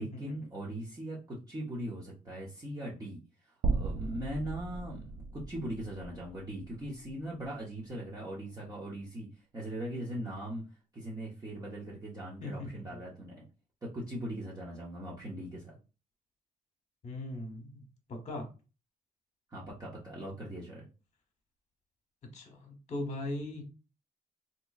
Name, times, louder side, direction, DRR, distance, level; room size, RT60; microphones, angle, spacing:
voice 1, 0.0-3.2 3.7-9.3 9.5-10.6 10.9-13.4 13.8-15.7 19.5-20.9, right 1 dB, 25° right, -5 dB, 0.8 m, -40 dB
sound 1, 3.6-7.9, right 3 dB, 80° right, 0.5 m, -36 dB
voice 2, 12.4-13.0 17.0-17.8 18.1-18.5 22.3-23.6, left 1 dB, 45° left, 4 dB, 1.0 m, -39 dB
3.7 x 2.8 x 2.3 m, 0.32 s
cardioid pair, 140°, 16 cm